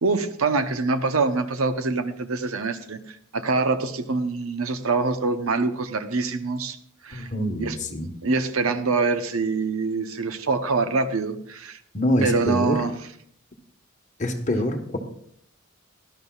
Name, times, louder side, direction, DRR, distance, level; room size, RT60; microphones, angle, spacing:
voice 1, 0.0-6.8 7.0-7.3 7.6-7.8 8.2-11.8 12.2-13.0, right 3 dB, 85° right, 10 dB, 0.9 m, -25 dB
voice 2, 7.1-8.1 11.9-12.8 14.2-15.0, left 1 dB, 35° left, 4 dB, 1.3 m, -25 dB
17.5 x 12.0 x 2.4 m, 0.68 s
head